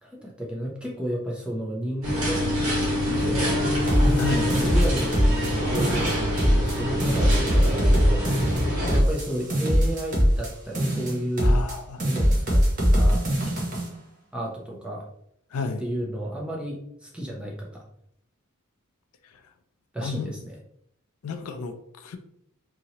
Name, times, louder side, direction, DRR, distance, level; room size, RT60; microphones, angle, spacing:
voice 1, 0.0-2.8 3.1-8.5 8.8-11.6 12.0-12.6 12.9-13.2 14.3-15.0 15.8-17.8 19.9-20.5, equal, 5° right, 0.6 m, -32 dB
sound 1, 2.0-9.0, equal, 70° right, 1.5 m, -26 dB
sound 2, 3.9-5.5 5.7-6.7 7.0-10.5 10.7-11.7 12.0-13.9, equal, 40° right, 0.8 m, -21 dB
voice 2, 4.2-4.5 11.4-12.0 15.5-15.9 19.3-19.4 20.0-20.4 21.2-22.2, left 4 dB, 85° left, 0.4 m, -31 dB
2.8 x 2.7 x 2.8 m
head